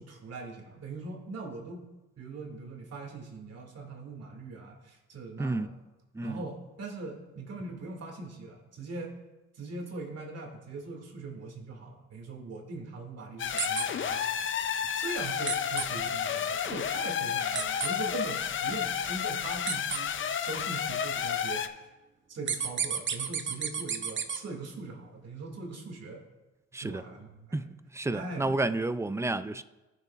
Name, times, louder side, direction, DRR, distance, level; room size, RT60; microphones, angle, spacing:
voice 1, 0.0-1.8 2.2-5.8 6.2-9.1 9.5-14.5 15.0-20.1 20.4-21.8 22.3-26.2 26.8-27.7 28.1-28.6, right 3 dB, 55° right, 2.3 m, -41 dB
sound 1, 13.4-21.7, left 8 dB, 40° left, 0.5 m, -31 dB
sound 2, 13.6-13.8 15.5-15.8 17.5-17.9 19.7-20.0 22.5-24.4, right 6 dB, 40° right, 0.8 m, -31 dB
voice 2, 27.9-29.6, right 2 dB, 10° right, 0.3 m, -30 dB
18.0 x 6.6 x 2.4 m
cardioid pair, 90°, 30 cm